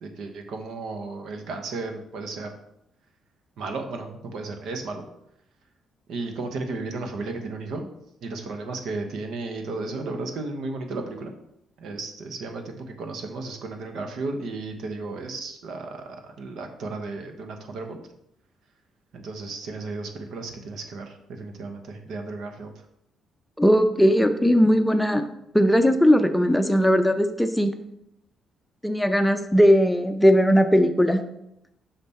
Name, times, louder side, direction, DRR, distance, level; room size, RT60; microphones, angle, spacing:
voice 1, 0.0-2.5 3.6-5.0 6.1-7.8 8.2-11.3 11.8-18.0 19.1-22.7, right 3 dB, 75° right, 5 dB, 1.0 m, -34 dB
voice 2, 23.6-25.3 25.5-27.7 28.8-31.2, equal, 5° left, 7 dB, 0.6 m, -19 dB
5.7 x 5.3 x 4.2 m, 0.80 s
cardioid pair, 90°, 0 cm